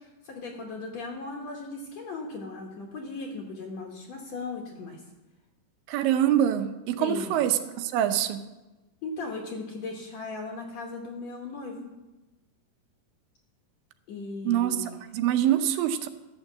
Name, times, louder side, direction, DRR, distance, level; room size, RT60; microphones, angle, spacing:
voice 1, 0.0-5.0 7.0-7.4 9.0-11.9 14.1-15.0, left 3 dB, 60° left, 0 dB, 2.2 m, -37 dB
voice 2, 5.9-8.4 14.5-14.8 15.1-16.1, right 11 dB, 90° right, 9 dB, 2.5 m, -24 dB
12.5 x 6.5 x 7.3 m, 1.1 s
omnidirectional pair, 3.9 m